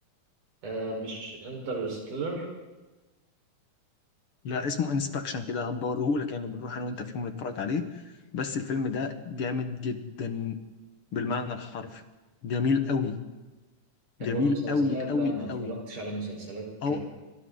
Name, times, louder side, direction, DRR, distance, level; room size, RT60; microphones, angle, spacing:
voice 1, 0.6-2.5 14.2-17.0, right 2 dB, 90° right, 0 dB, 6.6 m, -35 dB
voice 2, 4.4-7.9 8.3-10.6 11.1-12.0 12.4-13.2 14.2-15.7 16.8-17.0, left 4 dB, 50° left, 7 dB, 2.2 m, -29 dB
29.5 x 26.0 x 4.0 m, 1.2 s
omnidirectional pair, 3.5 m